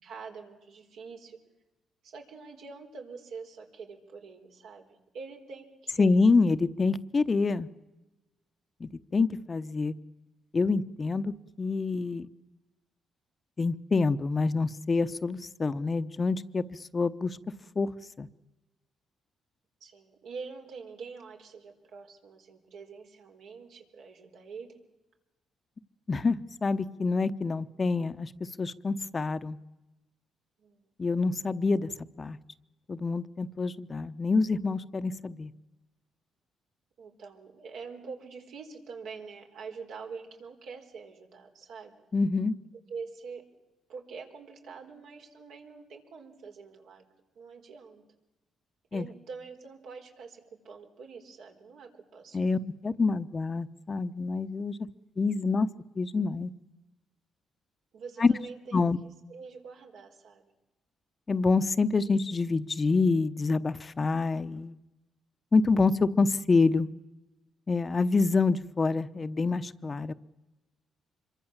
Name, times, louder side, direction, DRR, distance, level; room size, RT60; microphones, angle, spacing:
voice 1, 0.0-1.4 2.0-4.9 5.1-6.5 19.8-24.8 30.6-30.9 37.0-41.9 42.9-43.4 43.9-47.1 47.4-48.0 48.9-52.6 57.9-58.8 59.3-60.5, right 5 dB, 75° right, 2 dB, 4.3 m, -45 dB
voice 2, 6.0-7.7 8.8-9.9 10.5-12.3 13.6-16.6 16.9-17.4 17.8-17.9 18.2-18.3 26.1-28.3 28.6-29.6 31.0-31.9 32.2-32.4 32.9-35.5 42.1-42.6 48.9-49.1 52.3-54.8 55.2-55.7 56.0-56.5 58.2-58.3 58.7-59.0 61.3-64.7 65.5-66.9 67.7-70.1, left 4 dB, 30° left, 12 dB, 0.9 m, -26 dB
25.5 x 23.0 x 7.3 m, 1.0 s
cardioid pair, 90°, 0 cm